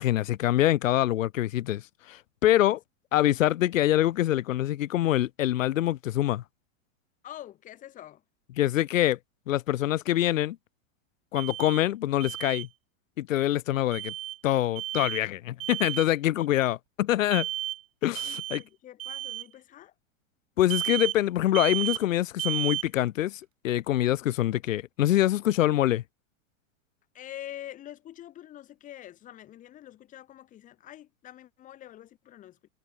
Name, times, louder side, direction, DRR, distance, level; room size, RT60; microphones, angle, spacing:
voice 1, 0.0-1.8 2.1-2.8 3.1-6.4 8.6-9.2 9.5-10.6 11.3-12.7 13.2-14.1 14.4-17.5 18.0-18.6 20.6-26.0, left 13 dB, 75° left, 2.9 m, -25 dB
voice 2, 7.2-8.2 16.4-16.5 18.2-19.9 27.1-32.6, left 12 dB, 20° left, 3.9 m, -45 dB
Alarm, 11.4-11.8 12.2-12.7 13.9-14.4 14.8-15.2 15.6-16.1 17.3-17.8 18.2-18.6 19.0-19.4 20.7-21.2 21.5-22.0 22.4-22.9, right 13 dB, 90° right, 2.8 m, -33 dB
supercardioid pair, 180°, 39 cm